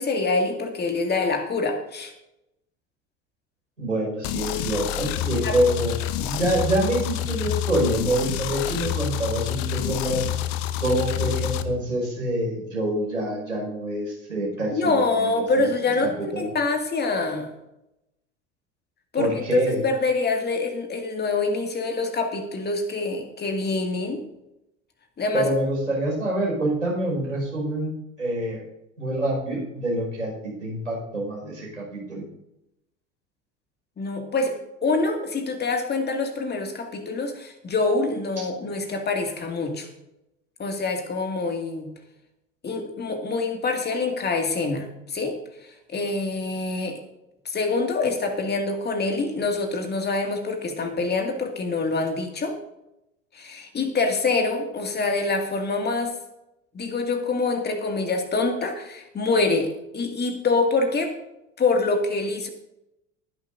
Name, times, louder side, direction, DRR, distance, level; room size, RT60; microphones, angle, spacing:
voice 1, 0.0-2.1 5.4-5.6 14.7-17.5 19.1-19.3 19.7-24.2 25.2-25.5 34.0-39.9 40.6-41.9 42.6-47.0 47.5-52.6 53.3-56.2 56.7-61.1 61.6-62.5, left 3 dB, 25° left, 3 dB, 2.2 m, -25 dB
voice 2, 3.8-10.2 10.8-15.7 16.0-16.5 19.1-19.8 25.3-27.9 28.2-28.6 29.0-32.3, right 1 dB, 90° right, -3 dB, 5.3 m, -26 dB
sound 1, 4.2-11.6, left 12 dB, 55° left, 0.9 m, -28 dB
21.0 x 10.5 x 2.7 m, 0.88 s
figure-of-eight pair, 70°, 37 cm